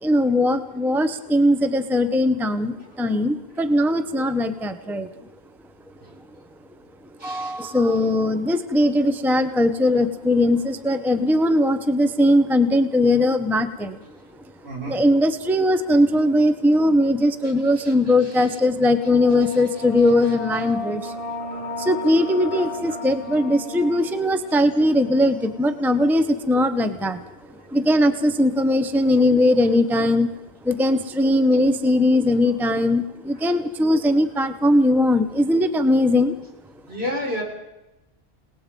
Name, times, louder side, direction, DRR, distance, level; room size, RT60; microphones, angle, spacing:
voice 1, 0.0-5.1 7.2-14.0 14.9-21.1 21.8-27.2 27.7-30.3 30.6-36.3, left 1 dB, ahead, 9 dB, 0.8 m, -20 dB
voice 2, 7.2-7.6 14.6-15.1 17.8-17.9 18.2-18.4 19.5-19.6 20.2-20.3 36.9-37.4, left 1 dB, 70° right, -3 dB, 5.7 m, -32 dB
sound 1, 18.8-26.1, left 2 dB, 55° left, 1.5 m, -35 dB
sound 2, 20.4-20.6 21.0-23.1, right 1 dB, 90° right, 6.7 m, -42 dB
29.5 x 18.5 x 5.3 m, 0.96 s
omnidirectional pair, 1.1 m